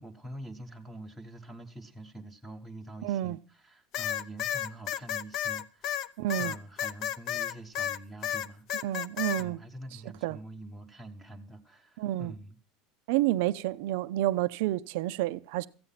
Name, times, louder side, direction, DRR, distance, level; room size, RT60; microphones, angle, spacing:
voice 1, 0.0-9.0 9.4-12.6, right 1 dB, ahead, 1.1 m, -46 dB
voice 2, 3.0-3.4 6.2-6.5 8.8-9.6 10.2-10.4 12.0-12.3 13.1-15.7, right 14 dB, 65° right, 0.5 m, -29 dB
sound 1, 3.9-8.0 8.2-9.4, left 11 dB, 40° left, 0.6 m, -32 dB
15.0 x 9.5 x 5.7 m
cardioid pair, 170°, 0 cm